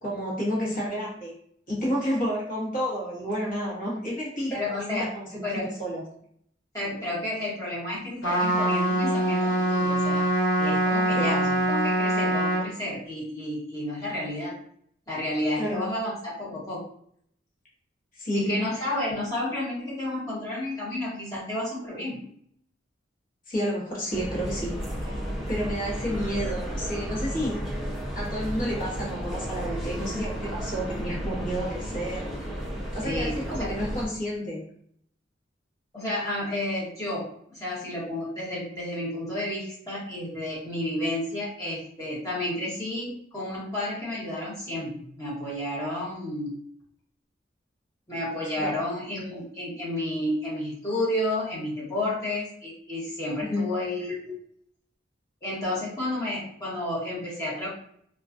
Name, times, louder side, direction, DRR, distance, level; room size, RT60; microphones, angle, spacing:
voice 1, 0.0-1.3 1.7-6.0 11.2-11.3 15.6-15.8 18.1-18.8 23.5-27.6 28.1-32.3 32.9-34.6 48.6-48.7 53.4-53.6, equal, 45° left, -5 dB, 1.0 m, -30 dB
voice 2, 4.5-5.1 5.4-5.7 6.7-10.3 10.6-14.5 15.1-16.8 18.3-22.2 33.0-33.7 35.9-46.6 48.1-54.4 55.4-57.7, left 1 dB, 20° left, -8 dB, 1.0 m, -31 dB
Trumpet, 8.2-12.7, right 1 dB, 75° left, 1.2 m, -24 dB
sound 1, 24.1-34.1, equal, ahead, 0.6 m, -33 dB
2.3 x 2.2 x 2.5 m, 0.66 s
head